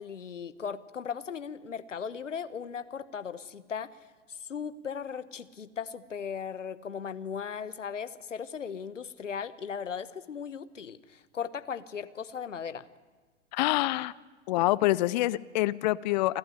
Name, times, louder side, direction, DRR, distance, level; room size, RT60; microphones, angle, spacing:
voice 1, 0.0-4.0 4.3-12.9, left 7 dB, 75° left, 14 dB, 1.3 m, -37 dB
voice 2, 13.5-14.1 14.5-16.4, left 17 dB, 35° left, 19 dB, 0.6 m, -26 dB
29.5 x 12.0 x 9.8 m, 1.4 s
figure-of-eight pair, 110°, 37 cm